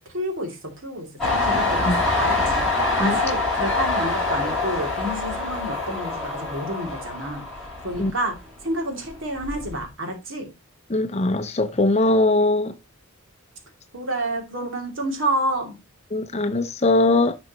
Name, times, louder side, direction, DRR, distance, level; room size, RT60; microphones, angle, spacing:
voice 1, 0.1-7.4 7.8-8.3 8.6-10.5 13.9-15.7, right 1 dB, 60° right, 2.7 m, -29 dB
Train, 1.2-8.6 9.0-9.8, left 2 dB, ahead, 5.8 m, -25 dB
voice 2, 10.9-12.7 16.1-17.4, left 2 dB, 30° left, 0.6 m, -20 dB
10.5 x 6.1 x 3.0 m
head